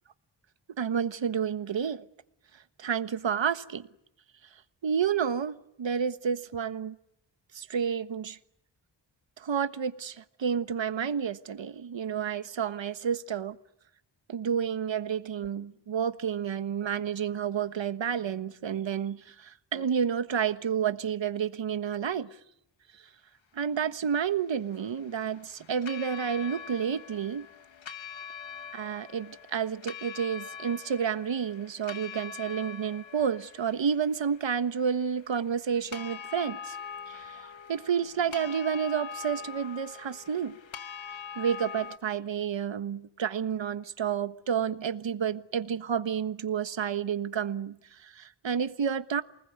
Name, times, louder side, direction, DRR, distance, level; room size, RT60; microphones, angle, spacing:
voice 1, 0.8-2.0 2.8-3.9 4.8-7.0 7.5-8.4 9.4-13.6 14.3-22.3 23.5-27.5 28.7-36.8 37.1-37.3 37.7-40.6 41.4-47.8 48.0-49.2, right 7 dB, 75° right, 1.4 m, -30 dB
sound 1, 24.0-42.0, left 7 dB, 75° left, 1.7 m, -44 dB
28.5 x 20.0 x 9.5 m
cardioid pair, 65°, 46 cm